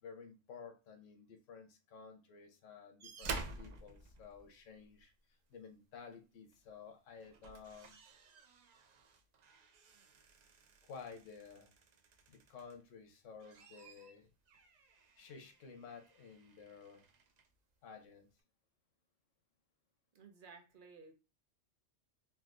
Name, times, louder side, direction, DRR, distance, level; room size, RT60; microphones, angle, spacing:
voice 1, 0.0-5.1 5.5-8.0 10.9-11.7 12.3-14.3 15.2-17.1 17.8-18.3, left 5 dB, 85° left, 1.1 m, -53 dB
sound 1, 3.0-5.0 6.5-6.7 7.1-12.9 13.3-17.5 18.4-18.5, right 4 dB, 75° right, 0.4 m, -51 dB
voice 2, 20.1-21.1, right 4 dB, 50° right, 0.7 m, -56 dB
3.4 x 2.6 x 2.4 m
omnidirectional pair, 1.3 m